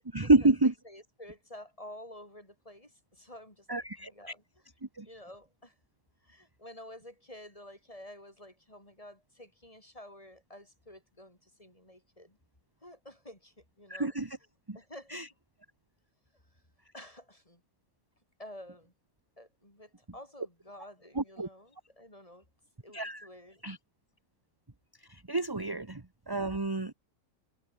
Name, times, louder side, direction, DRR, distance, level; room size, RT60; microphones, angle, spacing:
voice 1, 0.1-0.7 3.7-4.1 5.0-5.1 13.9-14.4 14.7-14.8 15.1-15.3 21.1-21.5 22.9-23.3 23.6-23.8 25.1-26.9, right 2 dB, 15° right, 1.2 m, -28 dB
voice 2, 0.9-3.6 4.0-4.4 5.0-5.7 6.3-12.4 12.8-14.1 14.7-15.2 16.9-17.6 18.4-18.9 19.4-22.4 22.8-23.6, left 1 dB, 20° left, 5.8 m, -50 dB
omnidirectional pair, 1.6 m